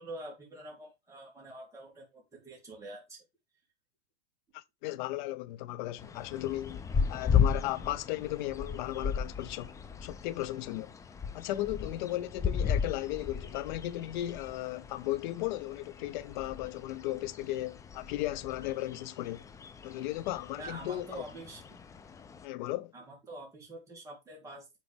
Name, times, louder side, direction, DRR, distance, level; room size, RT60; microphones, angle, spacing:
voice 1, 0.0-3.2 20.6-21.6 22.9-24.8, right 1 dB, 10° right, 3.0 m, -46 dB
voice 2, 4.5-6.8 7.1-9.7 10.0-10.9 11.3-19.4 19.8-21.2 22.4-22.9, left 15 dB, 50° left, 0.7 m, -35 dB
sound 1, 6.0-22.5, left 7 dB, 10° left, 0.5 m, -35 dB
7.4 x 4.1 x 3.5 m
hypercardioid pair, 125°, 31 cm